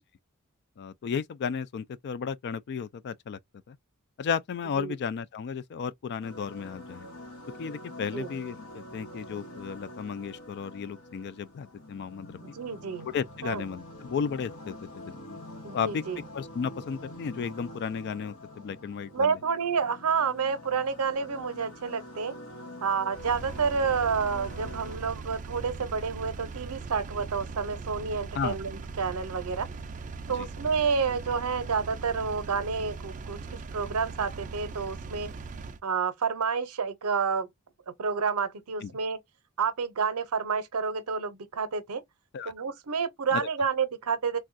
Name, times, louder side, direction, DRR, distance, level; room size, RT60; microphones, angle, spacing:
voice 1, 0.8-3.4 3.7-3.8 4.2-7.1 7.6-12.4 13.0-15.4 15.7-16.0 16.3-19.4 28.3-28.5 30.4-30.5 38.8-38.9 42.3-42.5 43.3-43.5, left 6 dB, 50° left, 0.3 m, -34 dB
sound 1, 6.2-25.0, left 1 dB, 85° left, 1.0 m, -46 dB
voice 2, 12.4-13.1 13.4-13.6 15.6-16.2 19.1-22.3 22.8-29.7 30.3-33.4 33.7-35.3 35.8-37.5 38.0-39.2 39.6-42.0 42.5-44.4, right 5 dB, 80° right, 0.6 m, -29 dB
Engine, 23.1-35.8, right 4 dB, 35° right, 0.4 m, -40 dB
3.3 x 2.2 x 2.5 m
head